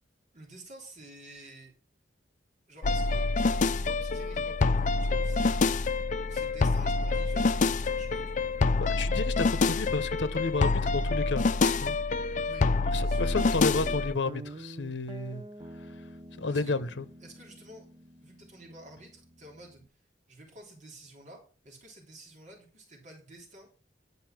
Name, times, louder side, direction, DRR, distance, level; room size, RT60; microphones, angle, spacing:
voice 1, 0.3-1.7 2.7-3.3 3.6-6.0 6.3-8.5 12.4-12.7 13.0-13.4 16.5-16.8 17.2-17.9 18.2-19.8 20.3-23.7, right 1 dB, 45° right, 3.3 m, -50 dB
sound 1, 2.8-14.1, left 3 dB, 45° left, 0.4 m, -27 dB
voice 2, 8.8-11.4 11.8-12.0 12.9-15.4 16.4-17.0, left 3 dB, 70° left, 0.9 m, -31 dB
Guitar, 13.2-19.9, right 1 dB, 25° right, 0.8 m, -47 dB
11.0 x 5.4 x 5.9 m
head